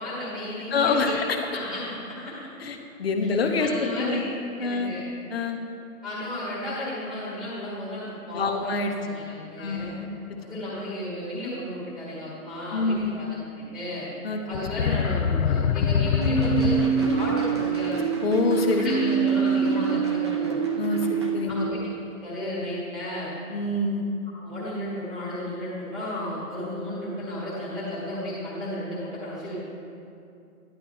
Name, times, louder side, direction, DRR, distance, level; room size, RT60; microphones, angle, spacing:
voice 1, 0.0-1.2 1.5-2.5 3.2-3.3 3.6-4.2 4.6-5.0 6.0-9.9 10.4-14.1 14.5-18.0 18.8-20.6 21.5-21.8 22.2-23.3 24.4-29.6, left 1 dB, 10° left, -11 dB, 1.8 m, -33 dB
voice 2, 0.7-1.4 2.6-4.2 4.6-4.9 5.3-5.6 8.3-8.9 9.6-10.1 12.7-13.2 14.2-14.4 14.8-15.0 18.2-19.1 20.8-21.7 23.5-24.0, left 3 dB, 40° left, 4 dB, 1.3 m, -26 dB
sound 1, 14.5-17.3, left 7 dB, 60° left, 0.6 m, -24 dB
sound 2, 16.2-21.4, right 7 dB, 20° right, 0.7 m, -25 dB
13.0 x 11.5 x 4.5 m, 2.6 s
hypercardioid pair, 170°, 45 cm